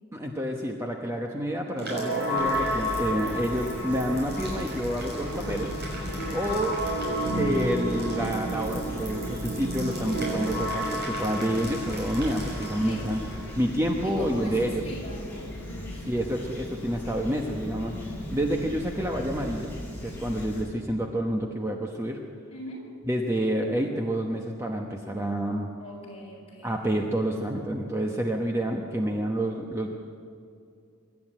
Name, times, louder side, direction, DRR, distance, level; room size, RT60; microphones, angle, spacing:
voice 1, 0.1-5.7 6.3-6.8 7.4-13.2 13.5-14.8 16.1-19.7 20.0-22.2 23.1-25.7 26.6-30.1, right 1 dB, 15° right, 1 dB, 1.0 m, -28 dB
sound 1, 1.7-13.6, equal, 50° right, 6.6 m, -32 dB
Fowl / Chirp tweet, 2.4-20.6, left 1 dB, 10° left, 6.6 m, -37 dB
voice 2, 12.8-13.1 14.0-16.1 22.5-22.8 25.8-26.7, equal, 25° left, -4 dB, 6.9 m, -41 dB
24.5 x 12.0 x 9.1 m, 2.4 s
head